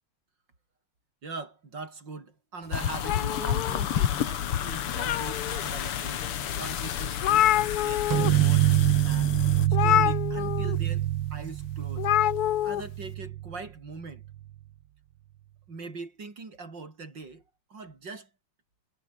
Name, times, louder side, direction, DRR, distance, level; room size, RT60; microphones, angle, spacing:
voice 1, 1.2-9.3 9.7-12.1 12.6-14.3 15.7-17.4 17.7-18.3, right 4 dB, 55° right, 4.9 m, -42 dB
sound 1, 2.7-9.7, left 10 dB, 90° left, 2.4 m, -31 dB
sound 2, 3.0-4.3 4.7-5.6 6.2-6.3 6.7-6.8 7.0-8.3 8.6-8.8 9.7-10.8 12.0-12.8, left 12 dB, 70° left, 0.9 m, -26 dB
sound 3, 8.1-13.6, right 13 dB, 75° right, 1.7 m, -25 dB
omnidirectional pair, 2.4 m